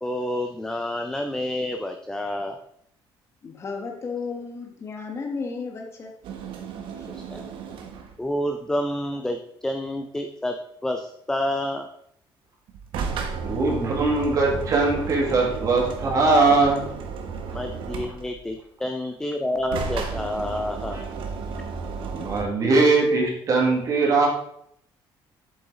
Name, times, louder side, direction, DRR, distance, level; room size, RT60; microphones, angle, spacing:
voice 1, 0.0-2.6 7.1-7.4 8.2-10.6 10.8-11.9 17.5-21.0, left 1 dB, 5° left, 5 dB, 0.5 m, -29 dB
voice 2, 3.4-6.1 6.9-7.3, left 4 dB, 30° left, 2 dB, 1.3 m, -34 dB
sound 1, 6.2-8.2 12.7-18.5 19.6-22.4, right 5 dB, 70° right, 1.3 m, -33 dB
voice 3, 13.4-16.8 20.9-21.0 22.1-24.3, right 3 dB, 40° right, -1 dB, 2.0 m, -21 dB
8.0 x 7.4 x 3.8 m, 0.71 s
cardioid pair, 145°, 9 cm